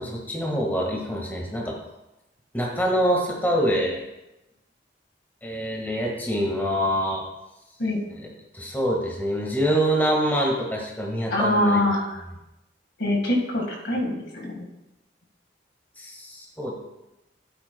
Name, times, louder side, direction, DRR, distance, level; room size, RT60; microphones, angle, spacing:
voice 1, 0.0-1.8 2.5-4.0 5.4-7.2 8.1-8.3 8.5-11.8 16.0-16.8, equal, 10° left, -1 dB, 1.7 m, -25 dB
voice 2, 11.3-12.1 13.0-14.7, left 1 dB, 80° left, 0 dB, 1.9 m, -24 dB
13.5 x 8.1 x 2.3 m, 0.94 s
head